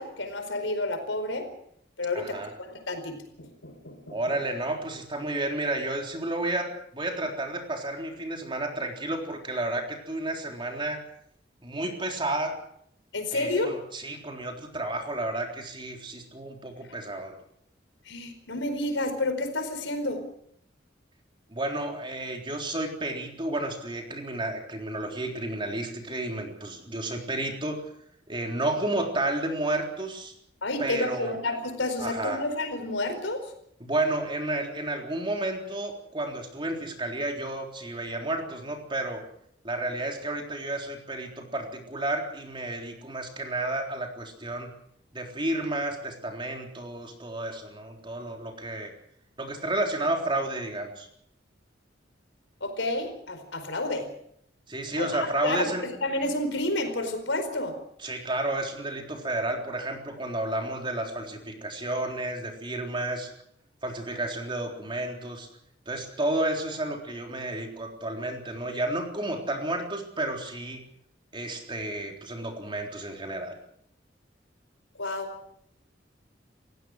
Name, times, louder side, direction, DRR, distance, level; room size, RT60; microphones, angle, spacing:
voice 1, 0.0-1.5 2.0-2.4 2.7-4.4 13.1-13.8 18.0-20.2 30.6-33.5 52.6-54.1 55.0-57.8 74.9-75.3, left 2 dB, 80° left, 7 dB, 4.7 m, -30 dB
voice 2, 2.2-2.5 4.1-11.0 11.6-12.6 13.3-17.3 21.5-27.8 28.3-30.3 30.8-31.4 32.0-32.4 33.8-39.2 39.6-44.7 45.1-48.9 49.4-51.1 54.7-55.8 58.0-63.3 63.8-65.5 65.9-70.8 71.3-73.6, right 2 dB, 25° right, 2 dB, 3.8 m, -31 dB
29.5 x 16.0 x 6.4 m, 0.69 s
head